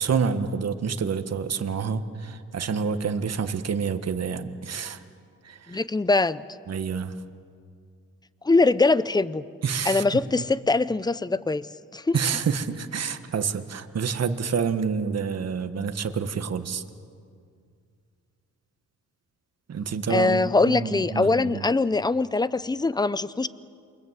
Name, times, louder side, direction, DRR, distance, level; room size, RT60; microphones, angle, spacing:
voice 1, 0.0-5.0 5.4-5.8 6.7-7.1 9.6-10.4 12.1-16.8 19.7-21.6, right 6 dB, 55° right, 9 dB, 1.6 m, -28 dB
voice 2, 5.7-6.4 8.4-9.4 9.8-11.7 11.9-12.2 20.1-23.5, left 3 dB, 15° left, 16 dB, 0.7 m, -22 dB
28.5 x 24.0 x 8.2 m, 2.2 s
cardioid pair, 90°, 31 cm